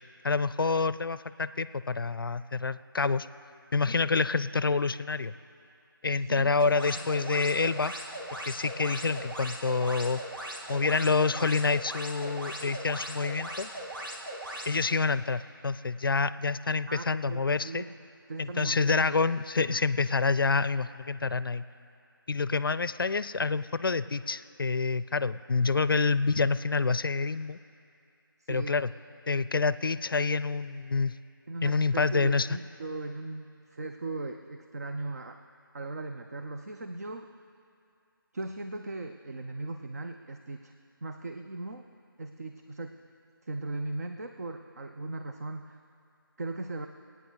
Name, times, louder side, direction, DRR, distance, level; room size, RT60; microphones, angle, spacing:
voice 1, 0.2-3.3 3.7-5.3 6.0-7.9 8.5-10.2 10.7-13.7 14.7-17.8 18.4-21.6 22.3-27.6 28.5-28.9 29.3-31.1 31.6-32.5, left 4 dB, 70° left, 16 dB, 0.4 m, -27 dB
voice 2, 6.2-6.5 7.0-7.3 16.9-18.0 18.3-19.2 19.6-19.8 28.4-28.8 31.5-35.4 35.7-37.4 38.3-40.7 41.0-41.9 42.2-43.0 43.4-45.8 46.4-46.9, right 2 dB, 45° right, 6 dB, 0.6 m, -38 dB
sound 1, 6.5-14.7, right 1 dB, 70° right, 2.4 m, -39 dB
27.0 x 9.2 x 4.0 m, 2.5 s
figure-of-eight pair, 165°, 12 cm